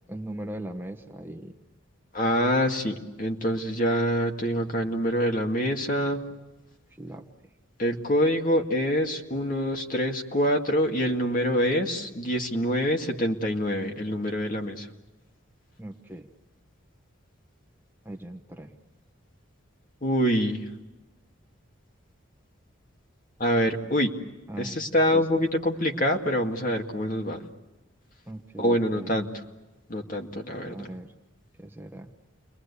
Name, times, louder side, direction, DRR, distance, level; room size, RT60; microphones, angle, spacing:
voice 1, 0.1-1.5 7.0-7.3 15.8-16.3 18.0-18.7 24.5-24.8 25.1-25.4 28.3-29.2 30.6-31.1 31.6-32.1, right 1 dB, 10° right, 3 dB, 1.2 m, -39 dB
voice 2, 2.1-6.2 7.8-14.9 20.0-20.7 23.4-24.1 24.6-27.4 28.6-29.3 29.9-30.9, equal, 40° left, 3 dB, 2.2 m, -25 dB
30.0 x 22.5 x 8.4 m, 1.1 s
head